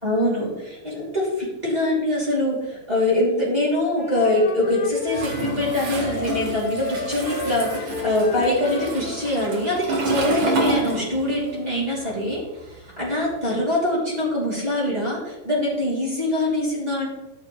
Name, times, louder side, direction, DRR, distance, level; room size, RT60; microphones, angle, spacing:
voice 1, 0.0-12.4 12.7-17.1, left 1 dB, 15° right, -6 dB, 2.9 m, -23 dB
Wind instrument woodwind instrument, 3.9-9.3, left 4 dB, 75° left, 2.1 m, -33 dB
Toilet flush, 5.1-11.5 11.8-13.4, right 2 dB, 50° right, 2.0 m, -29 dB
11.5 x 6.6 x 3.2 m, 1.0 s
omnidirectional pair, 3.3 m